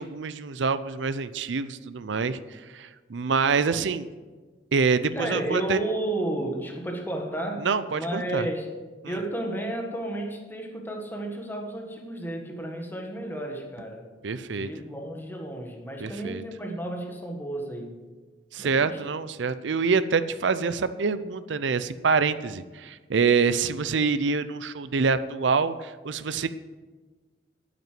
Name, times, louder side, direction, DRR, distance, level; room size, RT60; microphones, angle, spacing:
voice 1, 0.0-4.1 4.7-5.8 7.6-8.5 9.0-9.2 14.2-14.7 16.0-16.4 18.5-26.5, right 5 dB, 80° right, 13 dB, 0.5 m, -26 dB
voice 2, 5.1-7.7 7.9-8.7 9.0-14.0 14.5-17.9 18.6-19.0, right 1 dB, 10° left, 2 dB, 1.5 m, -32 dB
9.4 x 8.1 x 7.6 m, 1.3 s
head